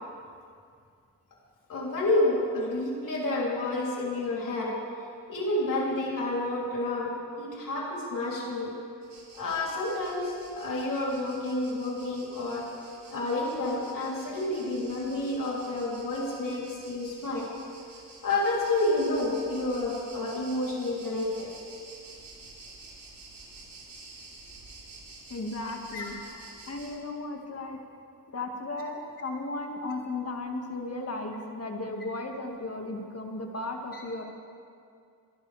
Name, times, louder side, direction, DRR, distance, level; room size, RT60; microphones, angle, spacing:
voice 1, 1.7-4.7 5.3-8.7 9.3-12.7 13.1-17.5 18.2-21.5 25.9-26.0 33.9-34.0, left 2 dB, 70° left, -4 dB, 3.4 m, -29 dB
sound 1, 9.0-27.0, right 3 dB, 85° right, 4.1 m, -50 dB
voice 2, 25.3-26.2 26.7-27.8 28.3-34.2, left 2 dB, 45° left, 2 dB, 1.9 m, -35 dB
24.0 x 11.5 x 3.4 m, 2.3 s
cardioid pair, 85°, 33 cm